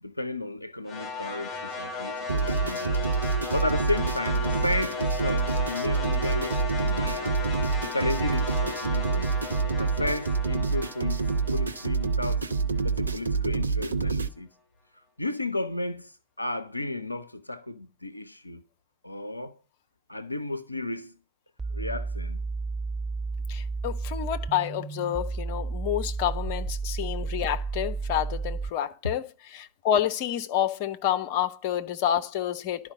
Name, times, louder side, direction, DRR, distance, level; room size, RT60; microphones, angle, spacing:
voice 1, 0.0-3.0 3.5-7.4 7.8-9.3 9.8-12.4 12.8-14.5 15.2-18.6 19.0-19.6 20.1-21.2 21.7-22.4, left 2 dB, 85° left, 0.6 m, -33 dB
sound 1, 0.9-13.1, left 3 dB, 20° left, 4.7 m, -35 dB
sound 2, 2.3-14.3, right 4 dB, 75° right, 0.7 m, -27 dB
sound 3, 21.6-28.7, right 4 dB, 15° right, 0.8 m, -32 dB
voice 2, 23.5-29.2 29.5-32.9, left 10 dB, 45° left, 1.0 m, -29 dB
11.5 x 5.1 x 7.7 m
figure-of-eight pair, 90°, 0 cm